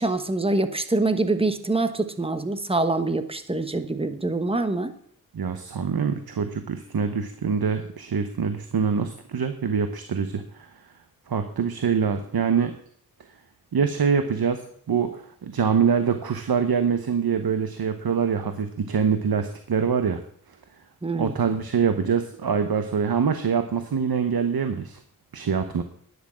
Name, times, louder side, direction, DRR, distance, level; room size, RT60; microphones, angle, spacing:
voice 1, 0.0-4.9 21.0-21.3, right 2 dB, 15° right, 9 dB, 1.2 m, -25 dB
voice 2, 5.3-10.7 11.3-12.7 13.7-14.6 14.9-20.2 21.1-25.0 25.3-25.8, right 6 dB, 80° right, 8 dB, 1.1 m, -24 dB
11.0 x 10.0 x 6.2 m, 0.64 s
wide cardioid pair, 90°, 36 cm